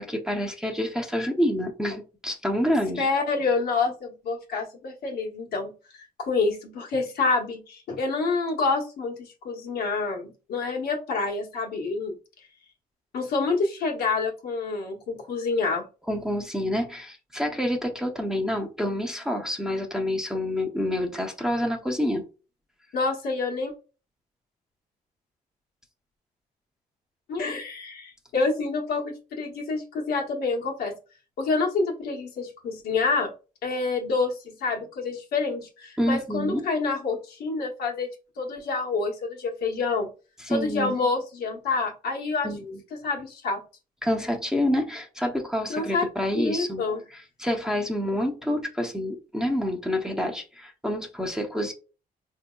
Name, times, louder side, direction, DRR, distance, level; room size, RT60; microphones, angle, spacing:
voice 1, 0.0-3.1 16.1-22.2 36.0-36.6 40.4-41.0 42.4-42.8 44.0-46.8 47.1-51.7, left 1 dB, 5° right, 0.7 m, -28 dB
voice 2, 3.0-12.2 13.1-15.8 22.9-23.7 27.3-31.0 31.4-33.3 33.6-38.1 38.4-40.1 40.5-42.5 42.9-43.6 45.7-46.0 46.4-47.0, left 4 dB, 85° left, 1.1 m, -27 dB
4.0 x 2.7 x 2.2 m
cardioid pair, 115°, 16 cm